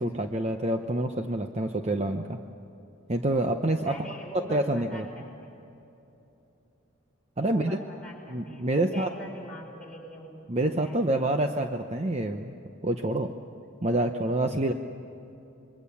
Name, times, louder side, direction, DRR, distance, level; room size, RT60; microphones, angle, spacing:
voice 1, 0.0-2.4 3.1-4.0 4.3-5.2 7.4-7.8 8.3-9.1 10.5-12.6 12.8-13.3 13.8-14.7, right 1 dB, 30° right, 5 dB, 0.8 m, -27 dB
voice 2, 3.8-5.5 7.4-10.3 10.7-11.4, equal, 5° left, -3 dB, 5.4 m, -43 dB
27.0 x 22.5 x 7.1 m, 2.9 s
head